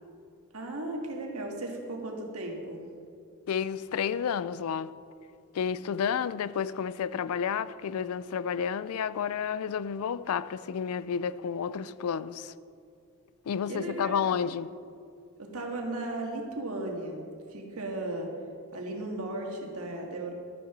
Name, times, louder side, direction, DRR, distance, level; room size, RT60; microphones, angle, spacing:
voice 1, 0.5-2.8 13.7-14.1 15.4-17.2 17.5-18.3 18.7-20.3, right 2 dB, 85° right, 1.7 m, -35 dB
voice 2, 3.5-4.9 5.5-12.5 13.5-14.7, left 7 dB, 80° left, 0.4 m, -31 dB
12.5 x 6.7 x 5.9 m
head